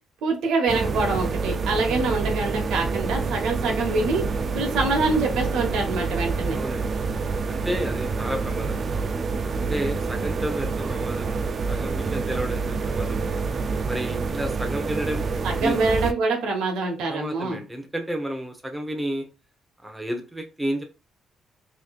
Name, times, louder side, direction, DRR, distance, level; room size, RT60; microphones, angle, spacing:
voice 1, 0.2-4.2 4.5-6.6 15.4-17.6, right 3 dB, 85° right, 2 dB, 1.2 m, -25 dB
sound 1, 0.7-16.1, right 4 dB, 45° right, 0.4 m, -27 dB
voice 2, 6.5-6.9 7.5-8.9 9.6-11.4 11.7-13.3 13.9-15.3 15.6-15.8 17.1-19.2 19.8-20.8, equal, 5° right, 3 dB, 0.9 m, -31 dB
4.0 x 3.1 x 2.4 m, 0.32 s
cardioid pair, 90°, 0 cm